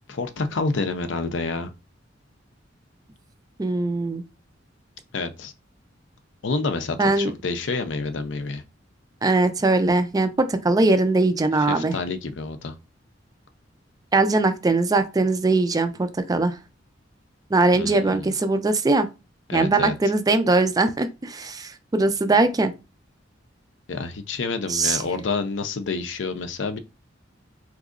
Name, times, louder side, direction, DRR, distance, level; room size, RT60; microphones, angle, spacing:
voice 1, 0.1-1.7 5.1-5.5 6.4-8.6 11.6-12.7 17.7-18.3 19.5-19.9 23.9-26.8, left 3 dB, 65° left, 0.5 m, -28 dB
voice 2, 3.6-4.2 7.0-7.3 9.2-11.9 14.1-16.5 17.5-19.1 19.5-22.7 24.7-25.0, right 2 dB, 20° right, 0.4 m, -21 dB
3.6 x 2.9 x 2.5 m
head